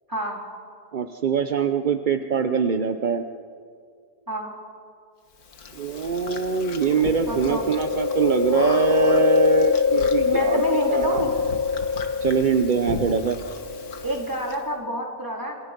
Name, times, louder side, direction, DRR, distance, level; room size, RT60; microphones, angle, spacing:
voice 1, 0.1-0.4 4.3-4.6 7.3-7.7 10.2-11.3 14.0-15.6, equal, 10° right, -1 dB, 4.0 m, -28 dB
voice 2, 0.9-3.2 5.7-10.6 10.9-11.2 12.2-13.4, right 6 dB, 45° right, 7 dB, 0.7 m, -23 dB
Chewing mastication, 5.6-14.6, left 5 dB, 75° left, 2.0 m, -24 dB
28.5 x 27.5 x 5.3 m, 2.2 s
omnidirectional pair, 1.6 m